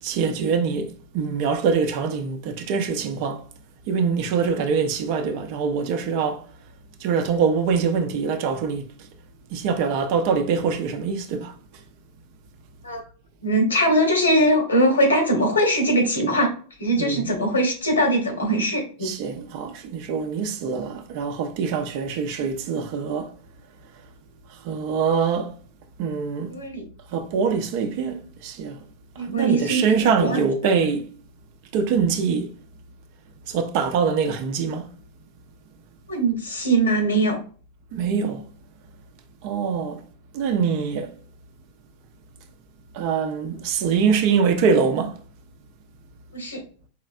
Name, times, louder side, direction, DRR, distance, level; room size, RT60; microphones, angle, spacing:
voice 1, 0.0-3.4 3.9-6.4 7.0-8.9 9.5-11.5 17.0-17.3 19.0-23.3 24.6-25.5 26.0-26.6 27.1-28.8 29.3-31.1 31.7-32.5 33.5-34.9 37.9-38.4 39.4-40.0 40.3-41.1 42.9-45.2, right 6 dB, 45° right, 0.6 m, -24 dB
voice 2, 13.4-16.5 16.8-19.1 26.5-26.8 29.2-30.4 36.1-37.4 46.3-46.6, right 1 dB, 75° left, 1.4 m, -21 dB
4.5 x 3.1 x 2.5 m
figure-of-eight pair, 90°, 0 cm